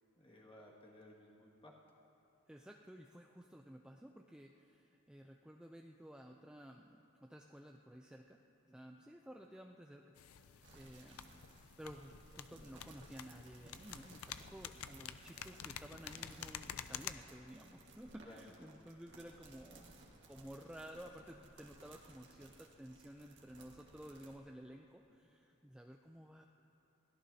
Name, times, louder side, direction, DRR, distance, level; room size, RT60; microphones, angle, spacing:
voice 1, 0.2-1.7 8.7-9.0 18.2-18.7 25.1-25.2, left 1 dB, 25° left, -3 dB, 2.0 m, -59 dB
voice 2, 2.5-8.4 8.7-11.4 11.8-19.9 20.3-26.5, equal, 5° right, 2 dB, 0.4 m, -54 dB
sound 1, 10.2-17.1, left 9 dB, 75° left, 0.5 m, -50 dB
sound 2, 10.6-24.4, right 2 dB, 55° right, 1.7 m, -60 dB
22.5 x 17.0 x 2.8 m, 2.8 s
head